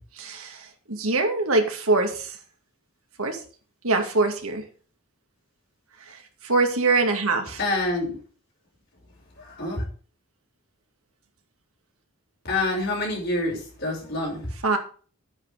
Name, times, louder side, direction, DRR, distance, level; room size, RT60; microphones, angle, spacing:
voice 1, 0.2-2.4 3.2-3.4 3.8-4.6 6.1-7.6 14.6-14.8, right 3 dB, 75° right, 4 dB, 2.3 m, -24 dB
voice 2, 7.6-8.1 9.4-9.8 12.4-14.5, left 2 dB, 45° left, -2 dB, 6.1 m, -27 dB
10.0 x 9.5 x 3.6 m, 0.41 s
head